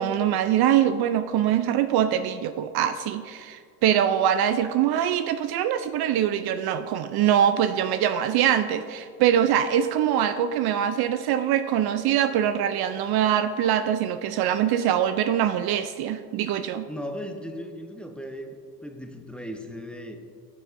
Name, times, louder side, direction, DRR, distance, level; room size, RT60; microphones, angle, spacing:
voice 1, 0.0-16.9, right 10 dB, 55° right, 11 dB, 0.5 m, -23 dB
voice 2, 16.9-18.5 18.8-20.2, equal, ahead, 4 dB, 0.8 m, -36 dB
12.0 x 6.2 x 2.6 m, 2.1 s
hypercardioid pair, 60°, 46 cm